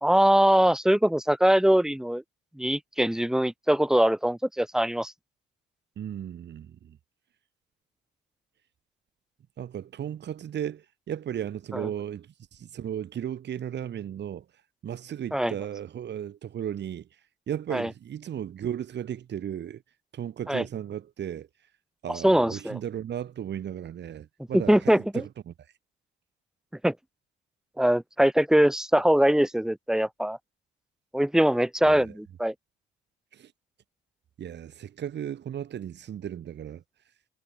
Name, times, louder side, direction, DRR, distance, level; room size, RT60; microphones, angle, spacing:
voice 1, 0.0-2.2 2.6-5.1 11.7-11.9 15.3-15.5 17.7-17.9 20.5-20.6 22.1-22.8 24.5-25.2 26.8-26.9 27.8-30.4 31.1-32.5, right 1 dB, 5° right, 1.2 m, -22 dB
voice 2, 6.0-7.0 9.6-14.5 14.8-17.1 17.5-19.8 20.1-21.5 22.0-25.5 31.8-32.1 33.3-33.5 34.4-36.8, right 9 dB, 60° right, 2.5 m, -35 dB
cardioid pair, 90°, 20 cm